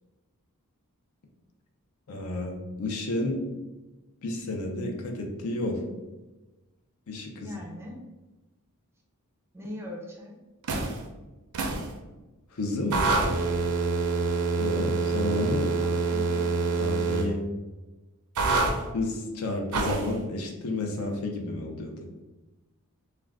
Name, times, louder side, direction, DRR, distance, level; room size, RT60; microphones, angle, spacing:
voice 1, 2.1-3.4 4.2-5.8 7.1-7.6 12.5-13.1 14.6-15.7 16.8-17.4 18.9-22.0, left 2 dB, 70° left, 2 dB, 0.5 m, -31 dB
voice 2, 7.4-8.0 9.5-10.4 15.7-16.6, left 1 dB, 10° right, 0 dB, 0.4 m, -40 dB
sound 1, 10.6-11.0 11.5-11.9 12.9-17.3 18.4-18.8 19.7-20.1, right 3 dB, 80° right, 0.5 m, -26 dB
2.4 x 2.2 x 3.3 m, 1.1 s
head